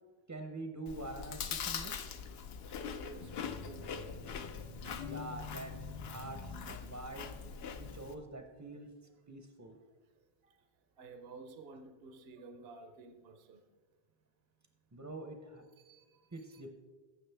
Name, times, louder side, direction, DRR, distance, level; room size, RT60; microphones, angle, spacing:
voice 1, 0.3-2.0 5.0-5.7 6.0-7.3 7.8-8.9 9.3-9.8 14.9-15.6 16.3-16.7, right 2 dB, 20° right, 0.5 m, -45 dB
Chewing mastication, 0.9-8.2, left 6 dB, 75° left, 0.9 m, -43 dB
voice 2, 2.7-4.0 4.8-5.1 10.4-10.5 11.0-13.6 15.8-16.6, right 3 dB, 75° right, 0.9 m, -53 dB
sound 1, 3.2-7.4, left 4 dB, 45° left, 0.6 m, -48 dB
15.0 x 6.1 x 3.4 m
omnidirectional pair, 1.0 m